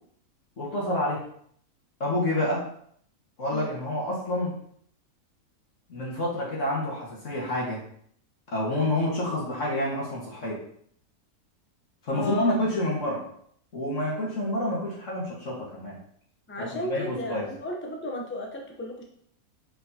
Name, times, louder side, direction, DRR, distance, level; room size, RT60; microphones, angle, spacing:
voice 1, 0.6-1.2 2.0-2.7 3.4-4.5 5.9-7.8 8.5-10.6 12.0-13.2 13.7-16.0 16.6-17.5, left 1 dB, 55° left, -5 dB, 2.0 m, -28 dB
voice 2, 12.1-12.6 16.5-19.0, left 1 dB, 10° left, 1 dB, 0.7 m, -34 dB
5.9 x 5.6 x 2.9 m, 0.64 s
omnidirectional pair, 1.6 m